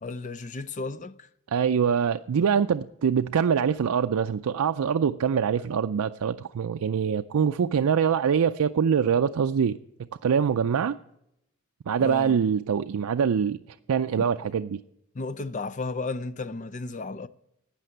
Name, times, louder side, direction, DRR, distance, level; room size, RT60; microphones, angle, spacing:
voice 1, 0.0-1.3 12.0-12.4 14.2-14.3 15.1-17.3, left 3 dB, 35° left, 0.5 m, -34 dB
voice 2, 1.5-9.8 10.2-11.0 11.9-13.6 13.9-14.8, right 7 dB, 80° right, 0.4 m, -24 dB
12.5 x 8.6 x 9.1 m
head